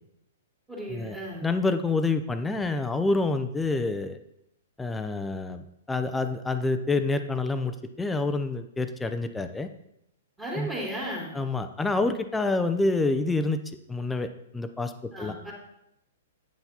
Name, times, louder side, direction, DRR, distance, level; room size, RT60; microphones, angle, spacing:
voice 1, 0.7-1.4 10.4-11.4 15.1-15.5, right 1 dB, 15° right, -6 dB, 2.4 m, -35 dB
voice 2, 1.4-4.2 4.8-9.7 10.6-10.7 11.3-14.3 14.5-15.3, left 3 dB, 10° left, 8 dB, 0.6 m, -27 dB
8.9 x 5.7 x 4.1 m, 0.79 s
figure-of-eight pair, 110°, 0 cm